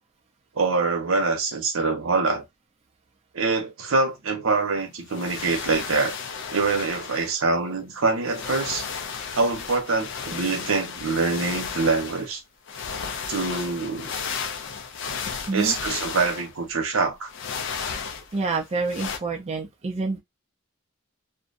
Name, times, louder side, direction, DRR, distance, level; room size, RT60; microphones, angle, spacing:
voice 1, 0.6-2.4 3.3-6.2 6.5-8.9 9.3-12.4 13.3-14.1 15.5-17.3, right 3 dB, 80° right, 0.8 m, -24 dB
sound 1, 5.1-7.4 8.2-12.3 12.7-16.7 17.3-18.6 18.9-19.2, left 6 dB, 60° left, 0.5 m, -34 dB
voice 2, 18.3-20.2, right 3 dB, 30° right, 0.4 m, -27 dB
2.5 x 2.1 x 2.4 m
head